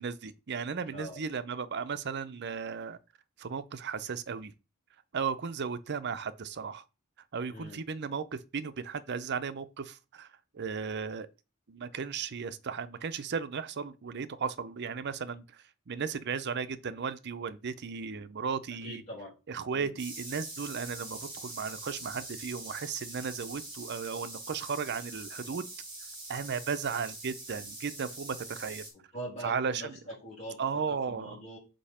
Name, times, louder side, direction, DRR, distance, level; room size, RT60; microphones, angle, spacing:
voice 1, 0.0-3.0 3.4-4.5 5.1-6.8 7.3-10.3 10.5-11.3 11.7-15.4 15.9-19.0 19.5-25.6 26.3-28.8 29.4-30.0 30.6-31.4, right 6 dB, 55° right, 0.6 m, -35 dB
voice 2, 0.9-1.2 7.5-7.8 18.8-19.4 19.7-19.9 29.1-30.6 30.9-31.6, right 1 dB, 30° left, 3.6 m, -43 dB
sound 1, 20.0-28.9, right 2 dB, 20° right, 2.5 m, -44 dB
5.3 x 4.8 x 4.3 m
head